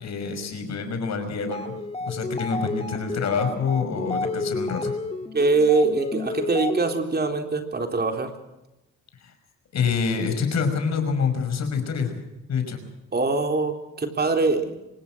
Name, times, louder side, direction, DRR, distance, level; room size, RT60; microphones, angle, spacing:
voice 1, 0.0-1.8 2.1-4.9 9.2-9.3 9.7-12.2 12.5-12.9, left 5 dB, 60° left, 7 dB, 5.7 m, -26 dB
sound 1, 1.4-7.2, left 2 dB, 20° left, 2.0 m, -31 dB
voice 2, 5.3-8.3 13.1-14.8, right 3 dB, 35° right, 5 dB, 3.7 m, -23 dB
24.5 x 20.0 x 6.2 m, 0.98 s
cardioid pair, 90°, 30 cm